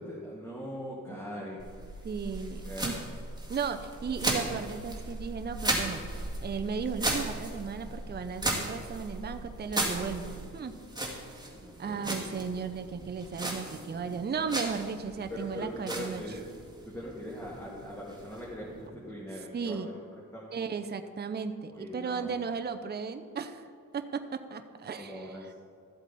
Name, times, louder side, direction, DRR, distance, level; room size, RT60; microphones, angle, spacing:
voice 1, 0.0-2.1 2.6-3.0 11.5-12.3 15.3-16.6 16.8-20.0 20.3-20.6 21.7-22.5 25.0-25.5, equal, 5° left, -6 dB, 2.0 m, -41 dB
sound 1, 1.6-18.9, right 1 dB, 10° right, 1.9 m, -36 dB
voice 2, 2.0-3.0 3.5-6.0 6.4-10.8 11.8-16.2 19.5-19.9 20.5-23.6 23.9-25.2, right 5 dB, 30° right, 8 dB, 0.6 m, -35 dB
13.0 x 8.0 x 4.1 m, 2.3 s
cardioid pair, 95°, 36 cm